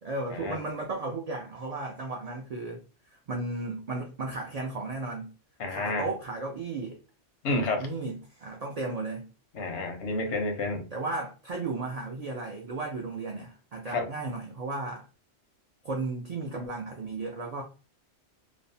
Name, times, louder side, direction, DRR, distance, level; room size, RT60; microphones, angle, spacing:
voice 1, 0.0-2.8 3.1-5.4 5.7-7.0 7.8-9.3 10.9-15.0 15.8-17.6, right 3 dB, 65° right, 0 dB, 0.4 m, -34 dB
voice 2, 5.6-6.1 7.4-7.9 9.5-10.9 13.9-14.1, left 2 dB, 90° left, 5 dB, 1.0 m, -30 dB
2.6 x 2.0 x 2.6 m, 0.34 s
omnidirectional pair, 1.2 m